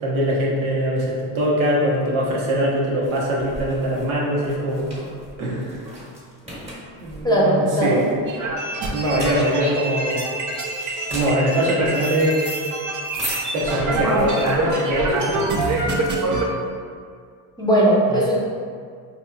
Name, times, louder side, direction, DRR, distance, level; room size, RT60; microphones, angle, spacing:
voice 1, 0.0-5.1 5.4-5.8 7.0-8.0 8.9-10.3 11.1-12.4 13.5-15.9 18.1-18.2, equal, 80° right, -5 dB, 1.0 m, -22 dB
sound 1, 2.2-16.6, right 1 dB, 15° right, 1.2 m, -38 dB
voice 2, 7.2-8.1 13.9-14.2 17.6-18.4, right 1 dB, 10° left, -5 dB, 0.8 m, -19 dB
sound 2, 8.3-16.4, right 2 dB, 40° right, 0.6 m, -25 dB
4.5 x 2.9 x 2.2 m, 2.1 s
supercardioid pair, 85°, 45 cm